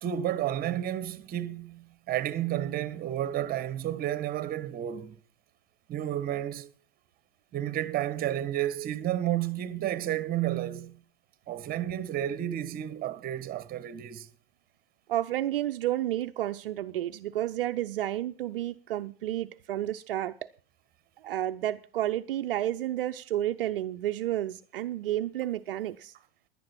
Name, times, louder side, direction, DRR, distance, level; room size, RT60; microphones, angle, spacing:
voice 1, 0.0-5.2 5.9-6.7 7.5-11.0 11.5-14.3, right 12 dB, 30° right, 1.4 m, -31 dB
voice 2, 15.1-20.5 21.2-26.1, right 13 dB, 65° right, 0.8 m, -31 dB
17.0 x 11.0 x 4.3 m
figure-of-eight pair, 90°, 30 cm